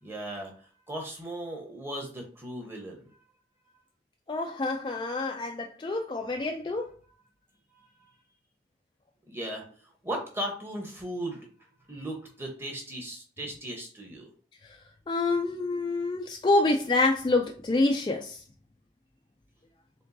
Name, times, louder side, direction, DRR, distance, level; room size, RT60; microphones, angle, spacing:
voice 1, 0.0-3.2 7.7-7.9 9.3-9.7 10.0-14.3, right 1 dB, 15° right, 1.0 m, -37 dB
voice 2, 4.3-6.9 14.6-14.8 15.1-18.4, left 2 dB, 25° left, 0.3 m, -27 dB
4.4 x 3.7 x 2.7 m
head